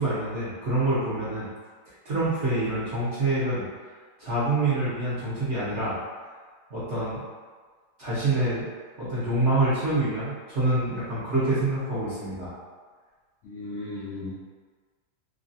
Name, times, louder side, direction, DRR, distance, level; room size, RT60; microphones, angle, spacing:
voice 1, 0.0-1.4 2.0-3.6 4.2-6.0 6.7-7.2 8.0-8.7 9.0-12.5, right 2 dB, 50° right, -11 dB, 0.9 m, -26 dB
voice 2, 13.4-14.3, left 2 dB, 75° left, -8 dB, 0.7 m, -35 dB
3.1 x 2.3 x 2.6 m, 1.5 s
omnidirectional pair, 1.9 m